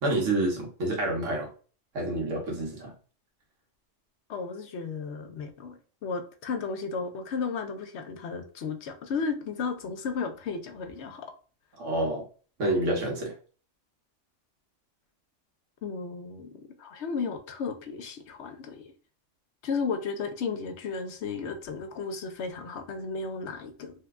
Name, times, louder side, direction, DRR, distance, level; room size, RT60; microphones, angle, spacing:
voice 1, 0.0-1.5 1.9-2.9 11.8-12.3 12.6-13.3, right 1 dB, 80° right, 1.5 m, -28 dB
voice 2, 4.3-11.3 15.8-18.8 19.6-23.9, left 5 dB, 70° left, 0.9 m, -34 dB
3.1 x 2.2 x 3.5 m
omnidirectional pair, 1.3 m